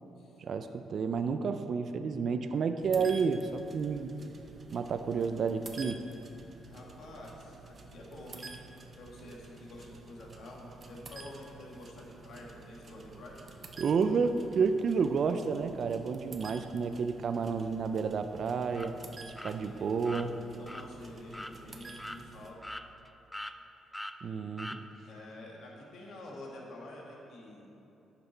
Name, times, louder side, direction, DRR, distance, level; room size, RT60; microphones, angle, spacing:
voice 1, 0.4-4.1 4.7-6.0 13.8-18.9 19.4-20.3 24.2-24.8, right 5 dB, 55° right, 8 dB, 0.4 m, -30 dB
sound 1, 2.8-22.5, right 3 dB, 35° right, 0.8 m, -50 dB
voice 2, 6.7-8.6 9.0-13.4 17.3-17.8 19.3-19.9 20.6-22.6 25.0-27.7, left 1 dB, 70° left, -2 dB, 1.8 m, -48 dB
sound 2, 18.7-18.9 19.4-19.5 20.0-20.3 20.7-20.8 21.3-21.5 22.0-22.2 22.6-23.1 23.3-23.6 23.9-24.2 24.6-24.8, left 1 dB, 5° left, 0.4 m, -41 dB
11.0 x 5.9 x 4.4 m, 3.0 s
cardioid pair, 90°, 0 cm